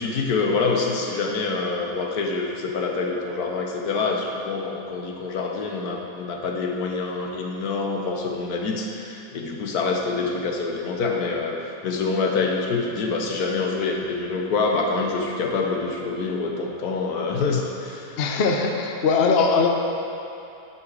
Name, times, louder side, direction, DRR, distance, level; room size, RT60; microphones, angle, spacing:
voice 1, 0.0-18.2, left 4 dB, 75° left, 1 dB, 1.4 m, -26 dB
voice 2, 18.2-19.7, left 4 dB, 55° left, 2 dB, 0.8 m, -20 dB
10.5 x 5.8 x 4.7 m, 2.7 s
omnidirectional pair, 1.7 m